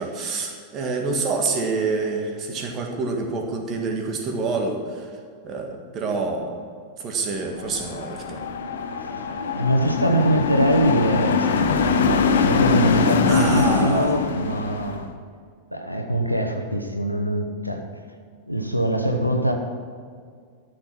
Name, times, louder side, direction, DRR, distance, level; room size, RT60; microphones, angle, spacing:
voice 1, 0.0-5.1 5.4-6.6 7.0-8.4 13.3-14.2, right 3 dB, 30° right, 3 dB, 1.8 m, -27 dB
sound 1, 7.6-15.0, left 5 dB, 60° left, 0.8 m, -23 dB
voice 2, 9.5-15.1 15.7-17.9 18.5-19.5, right 1 dB, 90° left, 4 dB, 1.1 m, -23 dB
13.0 x 6.5 x 6.0 m, 2.1 s
figure-of-eight pair, 90°, 0 cm